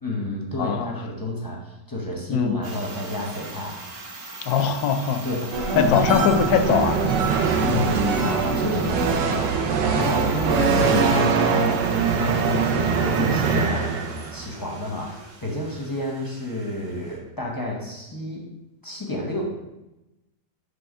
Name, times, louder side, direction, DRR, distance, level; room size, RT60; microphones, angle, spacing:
voice 1, 0.0-3.8 5.2-6.0 7.6-13.9 14.3-18.5 18.8-19.4, left 1 dB, 20° left, -2 dB, 0.5 m, -30 dB
voice 2, 0.6-0.9 2.3-2.6 4.4-5.2 5.8-7.0 10.6-11.1, left 7 dB, 70° left, 8 dB, 1.0 m, -22 dB
sound 1, 2.6-17.2, right 2 dB, 65° right, 1.5 m, -41 dB
sound 2, 5.5-14.3 14.7-15.3, right 2 dB, 50° right, 0.7 m, -30 dB
sound 3, 5.8-14.5, right 6 dB, 85° right, 1.3 m, -23 dB
5.5 x 3.2 x 5.4 m, 0.95 s
omnidirectional pair, 1.8 m